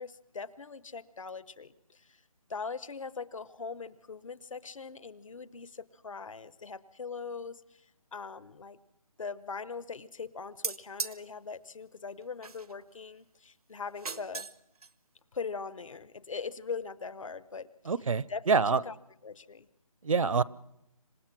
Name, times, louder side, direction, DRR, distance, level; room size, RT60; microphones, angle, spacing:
voice 1, 0.0-2.2 2.5-7.8 8.1-8.8 9.2-14.5 15.3-17.7 18.3-18.9 19.2-19.7, left 5 dB, 60° left, 18 dB, 0.9 m, -41 dB
sound 1, 10.6-11.2 12.4-12.8 13.9-14.6 14.8-14.9, right 4 dB, 85° right, 0.9 m, -37 dB
voice 2, 17.9-18.8 20.0-20.4, right 5 dB, 65° right, 21 dB, 0.7 m, -26 dB
27.0 x 16.5 x 6.0 m, 0.82 s
figure-of-eight pair, 170°, 19 cm